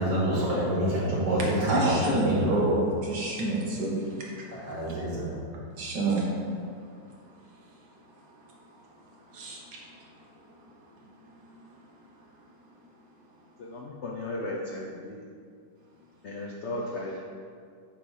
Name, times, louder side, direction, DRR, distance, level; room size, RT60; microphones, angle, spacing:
voice 1, 0.0-2.6 4.5-5.3, right 1 dB, 90° right, -6 dB, 2.5 m, -27 dB
voice 2, 1.7-4.0 5.8-6.2 9.3-9.6, right 2 dB, 70° right, -3 dB, 1.8 m, -27 dB
voice 3, 13.6-15.1 16.2-17.2, left 2 dB, 85° left, -2 dB, 0.6 m, -35 dB
7.4 x 3.1 x 5.4 m, 2.3 s
omnidirectional pair, 2.0 m